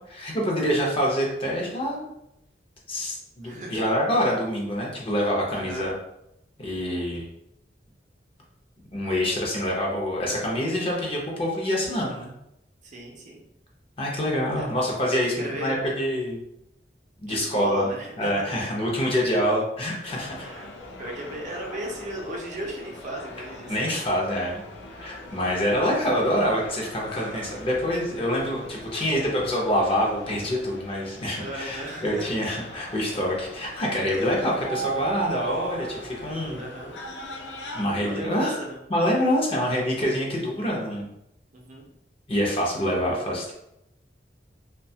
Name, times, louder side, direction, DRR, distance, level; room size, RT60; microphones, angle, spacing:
voice 1, 0.1-2.0 2.9-5.9 6.6-7.3 8.9-12.3 14.0-16.4 17.2-17.9 18.2-20.5 23.7-24.6 24.9-36.6 37.7-38.5 38.9-41.1 42.3-43.5, equal, 35° left, -2 dB, 0.6 m, -26 dB
voice 2, 3.4-3.8 5.5-5.9 7.1-7.3 12.9-13.4 14.5-14.7 15.4-15.7 17.3-18.6 20.4-20.7 21.0-24.0 27.3-27.5 31.4-32.3 32.7-32.9 36.5-37.0 38.0-38.8 39.4-39.5 41.5-41.9, right 1 dB, 45° right, -1 dB, 0.5 m, -36 dB
sound 1, 20.0-37.8, right 2 dB, 80° left, 0.4 m, -39 dB
2.7 x 2.2 x 2.7 m, 0.82 s
head